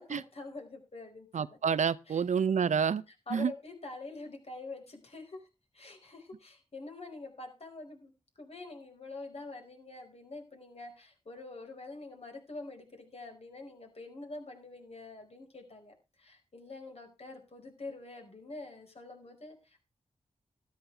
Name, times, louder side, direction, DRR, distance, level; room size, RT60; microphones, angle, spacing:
voice 1, 0.0-1.3 2.1-2.2 3.3-5.5 5.7-8.1 8.4-19.8, left 3 dB, 55° left, 5.1 m, -46 dB
voice 2, 1.3-3.0 3.3-3.5, right 6 dB, 75° right, 0.7 m, -28 dB
13.0 x 13.0 x 3.5 m
cardioid pair, 55°, 12 cm